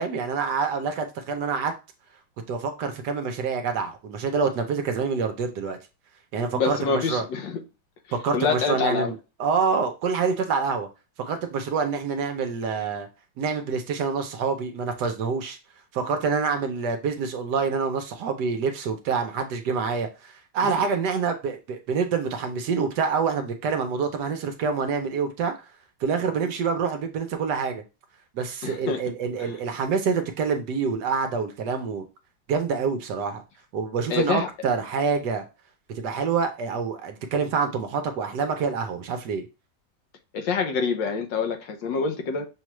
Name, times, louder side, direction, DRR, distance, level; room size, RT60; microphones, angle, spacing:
voice 1, 0.0-1.7 2.5-5.8 6.3-7.2 8.1-10.9 11.2-13.1 13.4-15.6 15.9-25.5 26.0-27.8 28.3-32.0 32.5-33.4 33.7-35.4 35.9-39.5, right 5 dB, 70° right, 1.3 m, -26 dB
voice 2, 6.5-7.6 8.3-9.1 20.6-20.7 28.6-29.0 29.4-29.5 34.1-34.5 40.3-42.5, left 5 dB, 75° left, 1.5 m, -26 dB
6.3 x 2.4 x 3.0 m
omnidirectional pair, 2.0 m